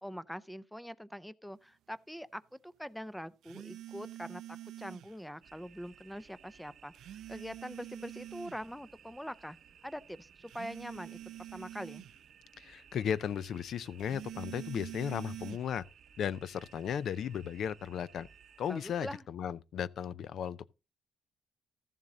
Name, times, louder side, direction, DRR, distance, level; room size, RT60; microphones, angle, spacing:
voice 1, 0.0-4.4 4.8-9.6 9.8-11.2 11.5-12.0 18.7-19.2, equal, ahead, 0.4 m, -43 dB
sound 1, 3.4-5.2 6.9-8.7 10.5-12.2 14.0-15.6, right 13 dB, 85° right, 0.5 m, -46 dB
sound 2, 5.4-19.2, right 8 dB, 45° right, 0.8 m, -59 dB
voice 2, 12.6-15.8 16.2-18.3 18.6-20.7, left 8 dB, 55° left, 0.5 m, -35 dB
14.5 x 7.3 x 3.8 m
cardioid pair, 175°, 0 cm